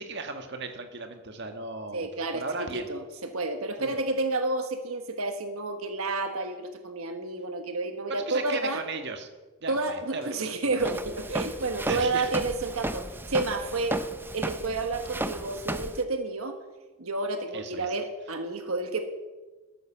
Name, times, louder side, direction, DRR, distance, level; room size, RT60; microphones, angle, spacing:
voice 1, 0.0-2.1 2.3-2.9 3.8-4.0 8.3-9.3 9.6-10.9 11.9-12.3 17.5-17.9, right 3 dB, 50° right, 6 dB, 1.6 m, -36 dB
voice 2, 1.9-8.8 9.7-14.0 14.3-16.6 17.0-19.0, right 3 dB, 75° right, 6 dB, 1.4 m, -30 dB
Walk footsteps, 10.8-16.0, right 1 dB, 10° right, 0.6 m, -34 dB
13.5 x 13.0 x 7.2 m, 1.2 s
head